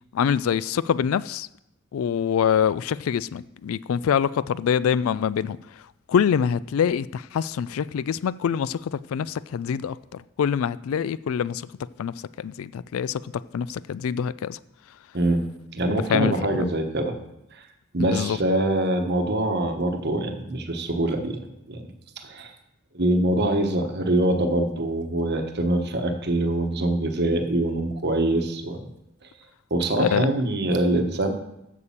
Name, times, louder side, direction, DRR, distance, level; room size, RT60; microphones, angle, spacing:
voice 1, 0.1-1.5 1.9-5.6 6.1-11.7 12.0-13.2 13.5-14.6 16.1-16.3 16.6-16.7 18.0-18.4 30.0-30.3, left 8 dB, 70° left, 18 dB, 0.3 m, -25 dB
voice 2, 15.7-17.2 17.5-17.6 17.9-21.4 21.7-21.8 22.2-22.5 22.9-28.9 29.7-31.3, right 1 dB, 50° right, 5 dB, 1.1 m, -24 dB
8.5 x 6.7 x 7.2 m, 0.84 s
head